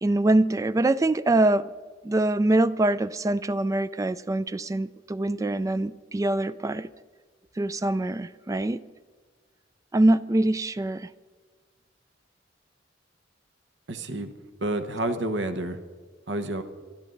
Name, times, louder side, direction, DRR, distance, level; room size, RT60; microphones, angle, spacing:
voice 1, 0.0-1.7 2.0-6.9 7.6-8.8 9.9-11.1, right 2 dB, 20° right, 0.3 m, -24 dB
voice 2, 13.9-14.3 14.6-15.8 16.3-16.6, right 1 dB, 75° right, 1.1 m, -29 dB
23.5 x 12.5 x 3.9 m
head